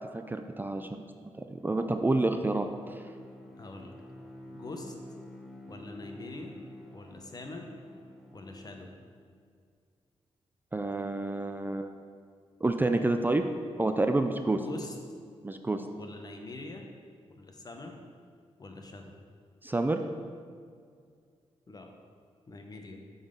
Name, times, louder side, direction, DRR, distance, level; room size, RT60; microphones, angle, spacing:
voice 1, 0.1-1.0 1.5-3.1 10.7-11.9 12.6-13.4 13.8-14.6 15.4-15.8 19.6-20.0, right 2 dB, 20° right, 6 dB, 0.4 m, -28 dB
Bowed string instrument, 1.5-9.2, left 1 dB, ahead, 0.8 m, -49 dB
voice 2, 3.6-4.0 4.5-4.9 5.7-6.6 6.9-7.7 8.3-8.9 14.5-15.0 16.0-16.9 17.3-18.0 18.6-19.0 21.7-21.9 22.5-23.0, left 2 dB, 35° left, 3 dB, 0.9 m, -43 dB
7.1 x 4.0 x 5.2 m, 2.1 s
cardioid pair, 90°, 11 cm